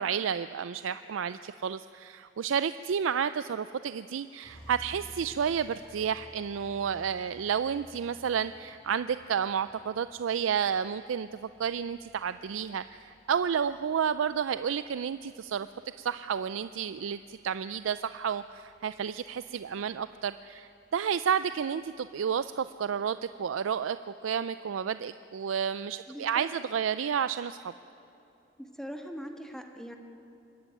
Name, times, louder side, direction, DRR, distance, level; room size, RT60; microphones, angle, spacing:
voice 1, 0.0-15.7 16.0-24.0 24.2-27.7, right 7 dB, 90° right, 13 dB, 0.4 m, -31 dB
sound 1, 4.4-23.6, equal, 40° left, 6.5 m, -57 dB
voice 2, 26.1-26.5 28.6-30.0, equal, 5° left, 3 dB, 1.6 m, -41 dB
25.0 x 13.0 x 9.3 m, 2.9 s
head